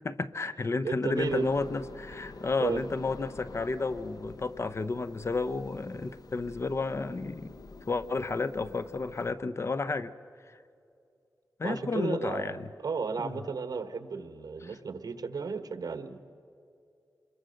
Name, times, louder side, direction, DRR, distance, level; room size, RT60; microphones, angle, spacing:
voice 1, 0.0-7.6 7.9-10.1 10.5-10.6 11.6-12.7 13.2-13.4 14.6-14.7, left 3 dB, 40° left, 13 dB, 0.8 m, -32 dB
voice 2, 0.8-1.5 2.6-2.8 11.6-16.2, right 5 dB, 65° right, 10 dB, 1.3 m, -34 dB
sound 1, 1.1-9.3, left 3 dB, 65° left, 1.2 m, -48 dB
27.0 x 22.0 x 6.6 m, 2.5 s
wide cardioid pair, 100°, 7 cm